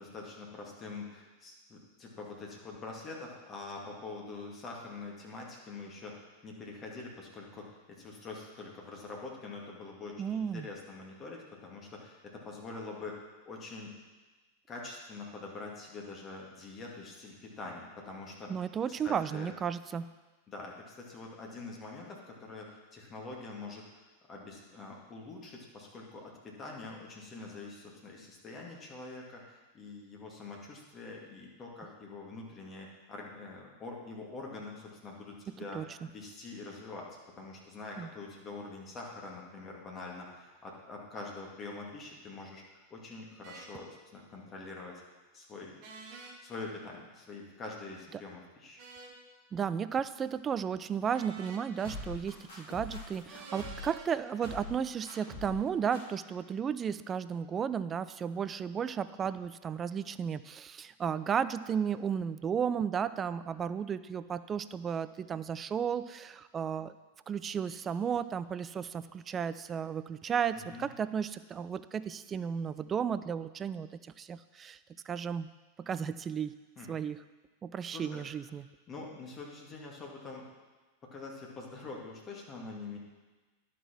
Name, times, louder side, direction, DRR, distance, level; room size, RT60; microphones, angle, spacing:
voice 1, 0.0-13.1 13.5-13.9 14.7-18.5 18.9-19.5 20.5-24.0 24.3-37.1 37.4-45.0 45.3-45.8 46.4-48.8 70.5-70.9 76.8-76.9 77.9-78.2 78.9-80.5 81.1-83.0, left 3 dB, 25° left, -1 dB, 2.3 m, -45 dB
voice 2, 10.2-10.7 18.5-20.1 35.5-35.8 38.0-38.1 49.5-66.9 67.3-74.8 75.1-75.5 75.8-76.5 76.9-77.2 77.6-78.6, right 7 dB, 25° right, 14 dB, 0.3 m, -34 dB
sound 1, 43.4-43.7 45.8-46.4 48.8-49.2 51.1-52.0 53.3-54.1, right 4 dB, 45° right, 1.6 m, -48 dB
sound 2, 51.8-53.9 54.4-54.8 55.1-55.6 55.9-56.0, left 2 dB, 55° left, 3.5 m, -43 dB
11.0 x 5.8 x 6.0 m, 1.3 s
figure-of-eight pair, 90°, 0 cm